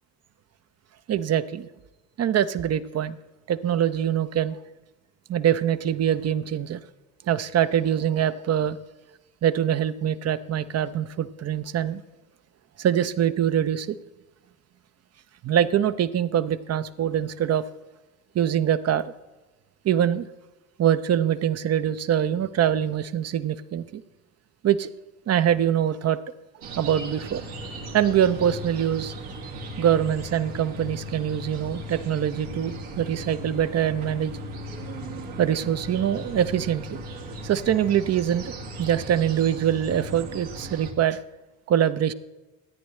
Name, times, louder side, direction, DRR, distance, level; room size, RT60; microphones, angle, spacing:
voice 1, 1.1-1.7 2.2-3.2 3.5-4.6 5.3-6.8 7.3-8.8 9.4-12.0 12.8-14.0 15.4-17.6 18.3-19.0 19.8-20.3 20.8-24.0 24.6-24.9 25.3-26.2 26.8-27.4 27.9-29.1 29.8-34.3 35.4-37.0 37.4-41.2 41.7-42.1, right 10 dB, 40° right, 13 dB, 0.6 m, -24 dB
sound 1, 26.6-40.9, equal, 75° right, 1.9 m, -37 dB
13.5 x 9.5 x 3.2 m, 1.1 s
hypercardioid pair, 60°, 40 cm